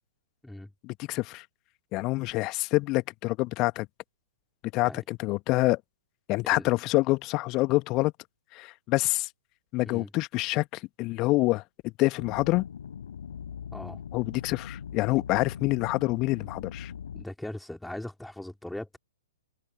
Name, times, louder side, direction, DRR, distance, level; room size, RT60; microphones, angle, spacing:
voice 1, 0.8-1.4 1.9-3.9 4.7-5.8 6.3-8.1 8.5-9.3 9.7-12.6 14.1-16.9, left 21 dB, 30° left, 1.8 m, -27 dB
sound 1, 12.2-17.2, left 8 dB, 60° left, 3.7 m, -41 dB
voice 2, 17.1-19.0, left 1 dB, ahead, 4.2 m, -39 dB
figure-of-eight pair, 115°, 0 cm